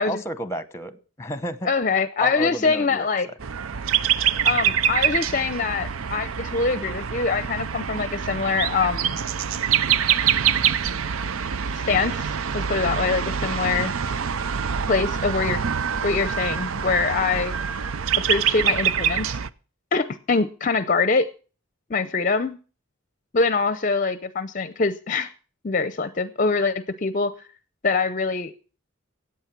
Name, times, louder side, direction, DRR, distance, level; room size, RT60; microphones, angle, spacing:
voice 1, 0.0-1.7 2.2-3.3, right 1 dB, 15° left, 13 dB, 0.9 m, -32 dB
voice 2, 1.6-3.3 4.4-9.2 11.7-13.9 14.9-15.6 16.0-17.5 18.3-19.4 19.9-21.3 21.9-22.6 23.3-25.3 25.6-27.3 27.8-28.5, left 4 dB, 40° left, 13 dB, 0.6 m, -24 dB
sound 1, 3.4-19.5, right 8 dB, 85° right, 0.6 m, -25 dB
sound 2, 8.1-15.0, right 1 dB, 55° right, 4.3 m, -47 dB
15.0 x 8.5 x 6.0 m, 0.38 s
head